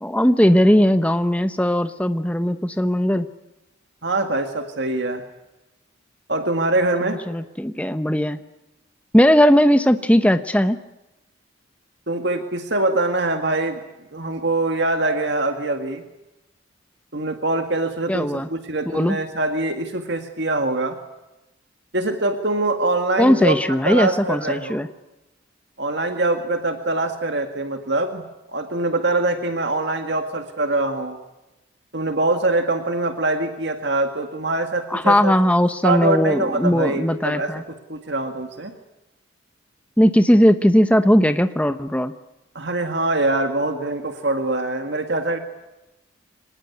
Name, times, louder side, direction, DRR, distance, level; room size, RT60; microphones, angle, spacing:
voice 1, 0.0-3.3 7.0-8.4 9.1-10.8 18.1-18.5 18.9-19.2 23.2-24.9 34.9-37.6 40.0-42.1, equal, 5° left, 9 dB, 1.0 m, -18 dB
voice 2, 4.0-5.2 6.3-7.2 12.1-13.8 14.1-16.0 17.1-21.0 21.9-23.5 23.9-24.8 25.8-28.2 28.5-31.2 31.9-35.3 35.8-37.5 37.9-38.7 42.6-45.4, right 2 dB, 60° right, 6 dB, 2.0 m, -23 dB
24.5 x 19.5 x 9.6 m, 0.98 s
head